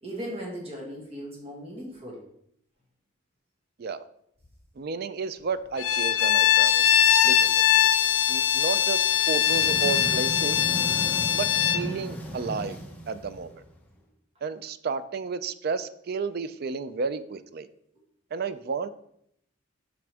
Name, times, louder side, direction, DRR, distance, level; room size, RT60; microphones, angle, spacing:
voice 1, 0.0-2.2, equal, 30° right, -3 dB, 1.5 m, -37 dB
voice 2, 4.8-6.9 7.2-7.7 8.3-10.6 11.3-11.5 11.7-12.8 13.1-13.5 14.4-17.7 18.3-18.9, right 5 dB, 50° right, 13 dB, 0.4 m, -32 dB
Bowed string instrument, 5.8-11.9, left 9 dB, 85° left, 0.4 m, -22 dB
sound 1, 9.3-13.9, right 1 dB, 10° left, 0.8 m, -36 dB
6.1 x 5.9 x 3.4 m, 0.72 s
head